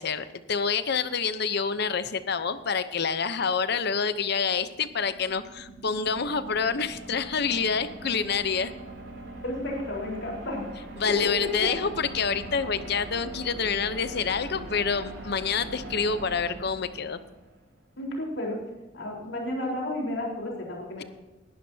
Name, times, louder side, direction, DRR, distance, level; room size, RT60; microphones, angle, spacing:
voice 1, 0.0-8.7 11.0-17.2, left 5 dB, 60° left, 12 dB, 0.8 m, -27 dB
sound 1, 4.5-17.6, right 1 dB, 85° right, 5.0 m, -42 dB
voice 2, 9.4-10.6 11.2-11.3 18.0-18.6 18.9-21.0, left 1 dB, 90° left, -2 dB, 4.3 m, -32 dB
20.0 x 12.0 x 2.8 m, 1.1 s
head